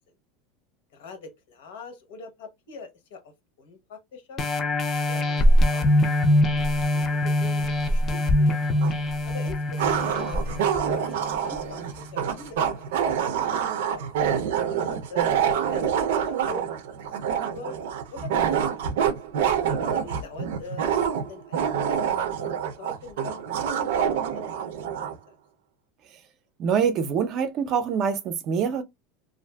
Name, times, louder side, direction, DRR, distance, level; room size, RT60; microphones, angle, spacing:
voice 1, 0.9-4.4 4.8-5.4 5.7-5.9 6.8-8.9 9.2-13.5 13.8-15.3 15.7-16.6 17.0-17.8 18.1-18.6 19.8-25.3, left 4 dB, 80° left, 0.9 m, -44 dB
sound 1, 4.4-11.6 12.1-12.2, left 1 dB, 20° left, 0.4 m, -23 dB
sound 2, 8.8-8.9 9.8-25.2, right 8 dB, 90° right, 0.5 m, -26 dB
voice 2, 26.6-28.8, right 7 dB, 35° right, 0.4 m, -25 dB
2.5 x 2.5 x 2.2 m
supercardioid pair, 170°, 0 cm